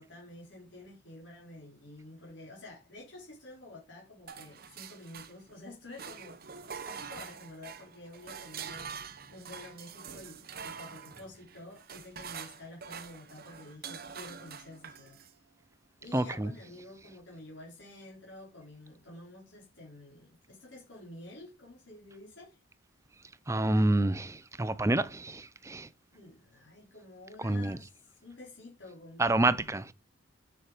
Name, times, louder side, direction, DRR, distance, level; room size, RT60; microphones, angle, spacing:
voice 1, 0.0-15.2 16.0-22.6 26.1-29.6, left 2 dB, 65° left, 4.3 m, -50 dB
sound 1, 4.3-5.6 5.9-15.4, right 6 dB, 45° right, 0.9 m, -45 dB
voice 2, 16.1-16.5 23.5-25.9 27.4-27.8 29.2-29.9, right 2 dB, 15° right, 0.5 m, -28 dB
7.5 x 6.9 x 5.0 m
head